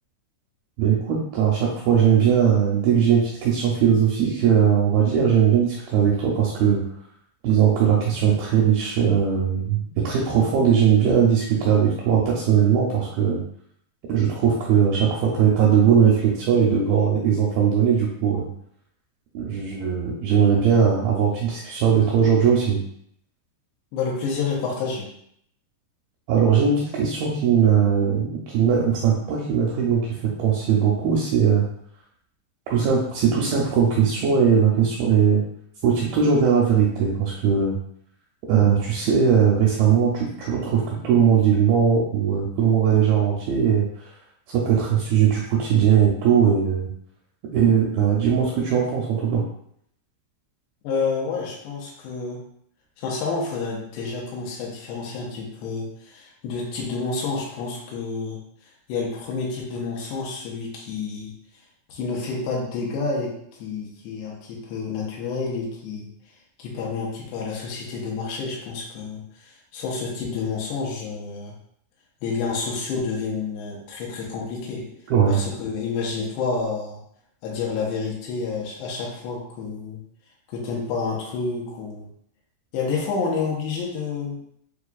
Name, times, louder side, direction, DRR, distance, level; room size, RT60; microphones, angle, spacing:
voice 1, 0.8-6.8 7.4-13.4 14.1-18.5 19.3-22.8 26.3-31.7 32.7-35.4 35.8-37.8 38.5-43.9 44.5-46.9 47.5-49.4 75.1-75.4, right 7 dB, 80° right, -3 dB, 2.2 m, -19 dB
voice 2, 23.9-25.1 50.8-52.4 53.0-58.4 58.9-61.3 61.9-66.1 66.6-71.6 72.2-74.9 75.3-77.0 77.4-80.0 80.5-82.1 82.7-84.4, left 4 dB, 80° left, -3 dB, 2.9 m, -29 dB
7.1 x 2.4 x 2.3 m, 0.69 s
omnidirectional pair, 4.8 m